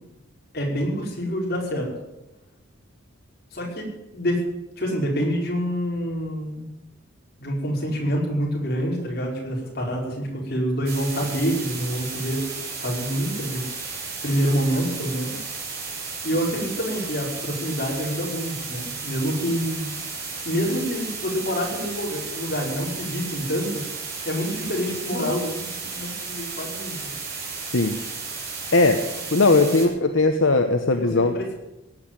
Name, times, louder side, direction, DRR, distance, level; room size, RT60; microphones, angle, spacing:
voice 1, 0.5-1.9 3.5-4.4 4.8-6.7 7.4-12.4 12.8-13.7 14.2-15.4 16.2-20.0 20.5-23.8 24.3-27.2 29.6-30.0 31.3-31.6, equal, 50° left, -2 dB, 5.2 m, -27 dB
sound 1, 10.9-29.9, right 4 dB, 50° right, 5.1 m, -34 dB
voice 2, 28.7-29.0 29.3-31.3, left 3 dB, 75° left, 6 dB, 1.1 m, -19 dB
17.5 x 8.7 x 9.0 m, 0.96 s
head